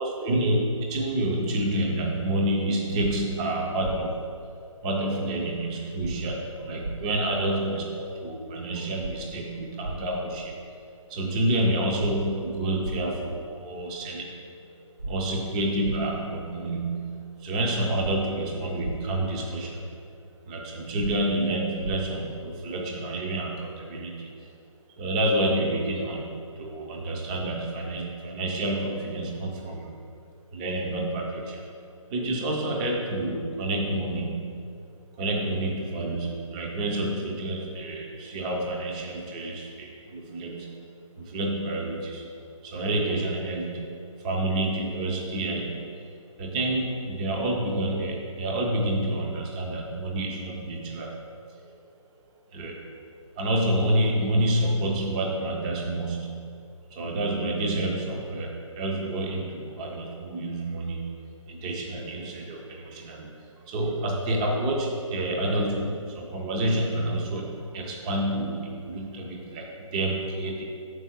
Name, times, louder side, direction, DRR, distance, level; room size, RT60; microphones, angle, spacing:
voice 1, 0.0-4.2 4.8-10.6 11.1-14.4 15.0-19.9 20.5-24.5 25.0-29.9 30.5-31.6 32.1-34.6 35.2-42.2 42.6-43.9 44.2-51.2 51.5-51.6 52.5-52.8 53.4-56.6 56.9-70.6, right 1 dB, 15° right, 0 dB, 0.4 m, -29 dB
sound 1, 3.0-3.1 3.8-4.0 6.0-6.1 6.8-6.9 9.0-9.1 9.8-10.0 12.0-12.1 12.8-13.0 15.0-15.1 15.8-16.0 18.0-18.1 18.8-18.9 21.0-21.1 21.8-21.9, right 2 dB, 85° right, 0.7 m, -33 dB
5.6 x 4.6 x 5.8 m, 2.4 s
figure-of-eight pair, 150°, 17 cm